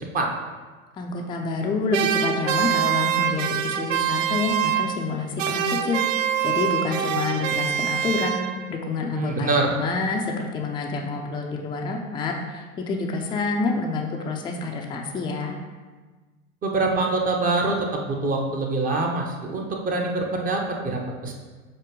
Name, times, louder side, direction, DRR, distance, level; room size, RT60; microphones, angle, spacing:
voice 1, 1.0-8.4 8.7-15.5, left 4 dB, 10° left, 1 dB, 0.5 m, -28 dB
sound 1, 1.9-5.1 5.4-8.8, right 9 dB, 65° right, 0.5 m, -25 dB
voice 2, 9.1-9.7 16.6-21.3, right 3 dB, 20° right, 1 dB, 0.8 m, -25 dB
7.6 x 2.9 x 5.1 m, 1.3 s
figure-of-eight pair, 90°, 42 cm